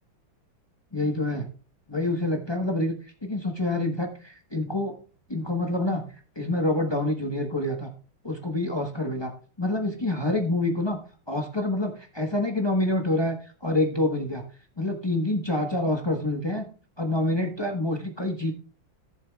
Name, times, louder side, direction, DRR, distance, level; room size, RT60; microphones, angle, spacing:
voice 1, 0.9-1.5 1.9-2.9 3.2-5.0 5.3-6.0 6.3-7.9 8.2-9.3 9.6-11.0 11.3-14.4 14.8-16.7 17.0-18.5, left 1 dB, 20° left, 2 dB, 0.8 m, -27 dB
16.5 x 7.3 x 2.4 m, 0.39 s
omnidirectional pair, 2.2 m